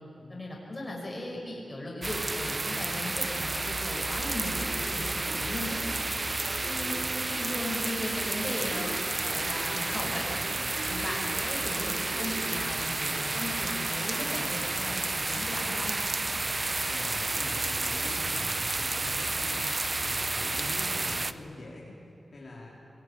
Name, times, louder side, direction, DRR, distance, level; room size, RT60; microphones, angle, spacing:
voice 1, 0.3-5.8 6.6-9.0 9.3-10.2 10.9-15.9, left 1 dB, 20° left, -2 dB, 6.3 m, -37 dB
sound 1, 2.0-21.3, right 2 dB, 30° right, 0.7 m, -31 dB
sound 2, 4.4-12.6, right 1 dB, 45° right, 4.3 m, -44 dB
voice 2, 16.3-22.7, left 2 dB, 45° left, -4 dB, 4.0 m, -44 dB
23.5 x 21.0 x 9.8 m, 2.9 s
wide cardioid pair, 130°, 0 cm